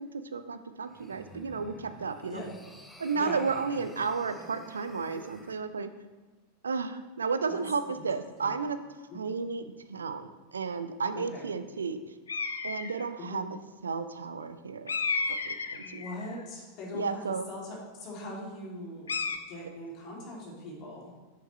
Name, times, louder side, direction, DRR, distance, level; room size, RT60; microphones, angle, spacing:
voice 1, 0.0-2.4 3.0-5.9 6.6-8.8 9.1-9.6 9.9-12.0 12.6-13.5 13.8-14.9 15.5-16.0 16.9-17.5, right 5 dB, 70° right, 11 dB, 0.5 m, -33 dB
sound 1, 0.8-5.6, equal, 5° left, 0.9 m, -51 dB
voice 2, 3.1-3.4 7.5-7.6 8.0-8.1 8.4-8.5 9.1-9.2 11.1-11.5 13.2-13.4 15.0-15.2 15.8-21.1, left 1 dB, 40° left, -3 dB, 2.7 m, -41 dB
sound 2, 12.3-13.1 14.9-16.4 19.1-19.4, left 4 dB, 70° left, 0.5 m, -32 dB
8.3 x 7.1 x 3.2 m, 1.3 s
figure-of-eight pair, 90°, 0 cm